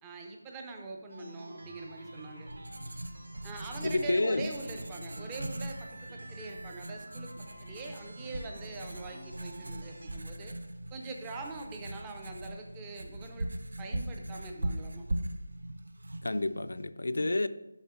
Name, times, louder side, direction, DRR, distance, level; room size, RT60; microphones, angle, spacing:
voice 1, 0.0-2.5 3.4-10.5 10.9-13.5 13.8-15.0 17.1-17.5, right 3 dB, 10° right, 0.4 m, -43 dB
sound 1, 1.1-10.2, right 1 dB, 65° right, 1.5 m, -50 dB
Writing, 2.1-16.9, right 1 dB, 85° right, 0.6 m, -40 dB
voice 2, 3.8-4.5 16.2-17.5, left 2 dB, 80° left, 0.4 m, -29 dB
7.2 x 5.6 x 4.4 m
figure-of-eight pair, 180°, 0 cm